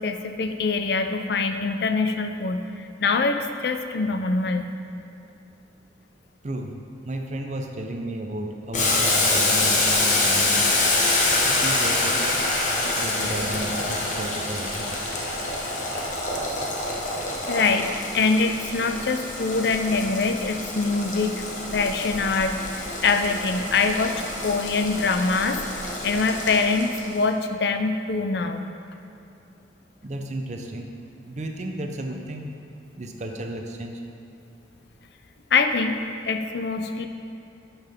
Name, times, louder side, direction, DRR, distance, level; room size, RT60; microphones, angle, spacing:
voice 1, 0.0-4.7 12.8-13.4 15.5-15.8 17.5-17.9 18.1-21.4 21.7-28.6 35.5-37.1, left 4 dB, 60° left, 7 dB, 0.4 m, -24 dB
voice 2, 6.4-6.8 7.0-10.6 11.4-12.4 12.9-15.1 30.0-30.9 31.2-32.5 33.0-34.0, right 1 dB, 40° right, 3 dB, 0.6 m, -33 dB
Boiling, 8.7-27.2, left 2 dB, 40° left, 1.1 m, -26 dB
11.0 x 5.7 x 3.6 m, 2.7 s
head